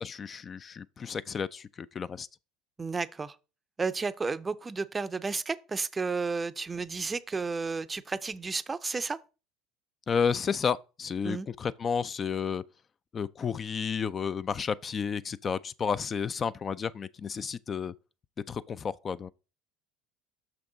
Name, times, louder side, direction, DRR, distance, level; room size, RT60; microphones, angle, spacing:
voice 1, 0.0-2.3 10.1-12.6 13.1-17.9 18.5-19.3, left 6 dB, 35° left, 0.3 m, -31 dB
voice 2, 2.8-3.4 3.8-9.2 11.2-11.5, right 4 dB, 20° right, 0.5 m, -32 dB
6.0 x 5.9 x 3.8 m
hypercardioid pair, 80°, 0 cm